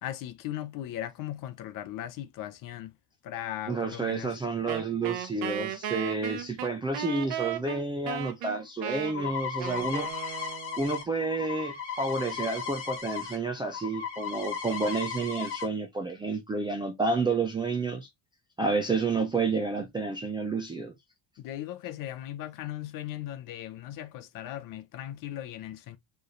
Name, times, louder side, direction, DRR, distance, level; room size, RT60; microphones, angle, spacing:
voice 1, 0.0-2.9 3.2-4.3 21.4-26.0, left 12 dB, 45° left, 0.6 m, -38 dB
voice 2, 3.7-10.1 10.8-18.1 18.6-20.9, right 3 dB, 10° right, 0.3 m, -30 dB
Wind instrument woodwind instrument, 4.7-11.0, right 11 dB, 70° right, 1.0 m, -36 dB
sound 1, 8.6-13.4 13.6-15.7, left 7 dB, 30° left, 1.7 m, -36 dB
4.5 x 3.3 x 3.1 m
cardioid pair, 175°, 45 cm